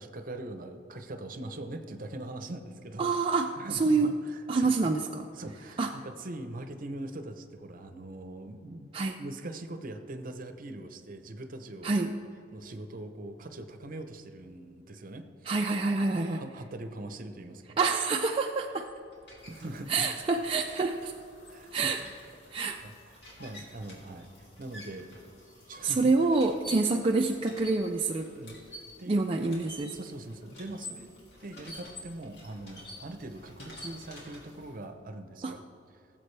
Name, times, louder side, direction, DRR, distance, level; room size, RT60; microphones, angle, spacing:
voice 1, 0.0-3.1 3.6-4.9 5.3-12.0 12.5-15.5 16.1-17.8 19.4-20.1 21.5-22.2 22.5-25.1 25.7-26.1 28.3-29.5 29.9-31.1 31.4-35.6 35.9-36.0, right 1 dB, 50° right, 8 dB, 0.8 m, -42 dB
voice 2, 3.0-3.5 3.8-4.1 4.5-5.3 5.8-5.9 8.9-9.2 11.8-12.1 15.5-16.4 17.8-18.9 19.9-21.1 21.7-22.0 22.5-22.8 25.8-28.3 29.1-30.0 35.4-35.5, right 3 dB, 30° right, 2 dB, 0.4 m, -27 dB
sound 1, 18.6-34.8, left 1 dB, 65° left, 2.7 m, -49 dB
17.5 x 7.5 x 3.3 m, 2.6 s
head